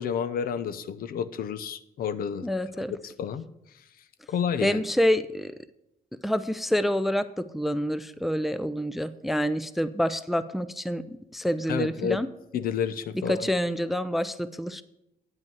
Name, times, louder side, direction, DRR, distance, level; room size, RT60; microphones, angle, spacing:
voice 1, 0.0-2.5 3.0-3.4 4.3-4.8 11.7-12.2 12.5-13.5, left 7 dB, 70° left, 14 dB, 0.6 m, -30 dB
voice 2, 2.4-2.9 4.6-5.5 6.2-12.3 13.3-14.8, equal, ahead, 13 dB, 0.4 m, -27 dB
9.3 x 5.4 x 7.0 m, 0.84 s
cardioid pair, 135°, 16 cm